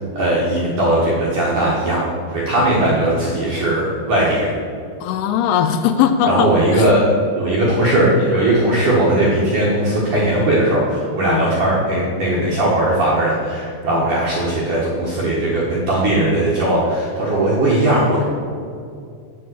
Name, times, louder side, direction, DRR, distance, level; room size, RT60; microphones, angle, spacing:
voice 1, 0.1-4.5 6.2-18.2, right 1 dB, 70° right, -6 dB, 2.0 m, -18 dB
voice 2, 5.0-6.9 11.2-11.5 12.3-12.5 13.9-14.1, left 9 dB, 85° left, 9 dB, 2.9 m, -20 dB
8.2 x 7.5 x 7.7 m, 2.3 s
omnidirectional pair, 5.7 m